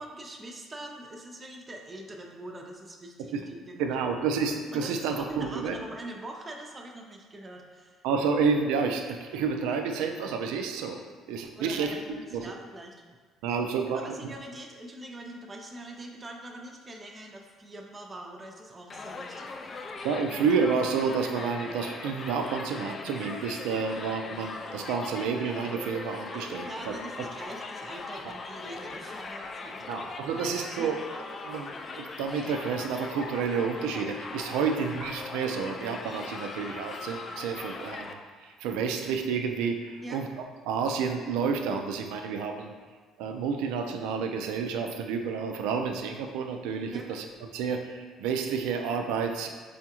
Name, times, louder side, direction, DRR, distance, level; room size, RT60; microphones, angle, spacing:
voice 1, 0.0-3.9 4.7-8.0 11.5-13.2 13.5-13.6 13.9-19.8 26.3-29.9 30.8-31.0 34.6-34.8 40.0-40.2 46.9-47.1, right 1 dB, 30° right, 1 dB, 0.5 m, -43 dB
voice 2, 3.8-5.8 8.0-11.0 11.3-12.5 13.4-14.2 20.0-26.9 29.9-31.0 31.4-31.7 32.0-40.3 40.7-42.7 43.2-47.3 47.5-49.5, right 5 dB, 85° right, 5 dB, 0.3 m, -30 dB
Crowd, 18.9-38.1, left 3 dB, 40° left, 0.3 m, -40 dB
4.9 x 2.3 x 2.9 m, 1.5 s
supercardioid pair, 75°, 0 cm